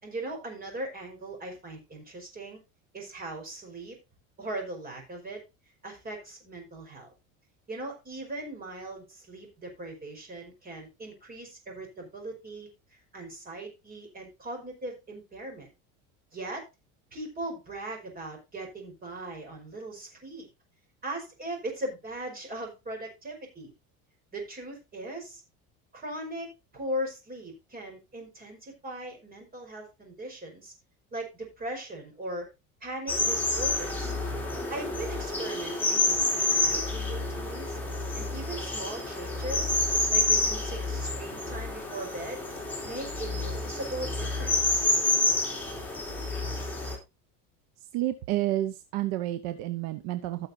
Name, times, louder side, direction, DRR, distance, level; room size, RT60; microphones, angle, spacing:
voice 1, 0.0-2.6 2.9-4.0 4.4-5.4 5.8-7.1 7.7-12.7 13.1-15.7 16.3-16.6 17.1-20.5 21.0-23.7 24.3-25.4 25.9-30.7 31.1-32.5 32.8-34.1 34.7-37.8 38.1-39.8 40.1-42.4 42.8-44.9, right 1 dB, 25° right, 2 dB, 4.8 m, -39 dB
sound 1, 33.1-47.0, left 2 dB, 5° left, 3.8 m, -29 dB
voice 2, 47.9-50.5, right 14 dB, 65° right, 10 dB, 0.9 m, -30 dB
16.0 x 6.6 x 2.7 m, 0.25 s
cardioid pair, 135°, 37 cm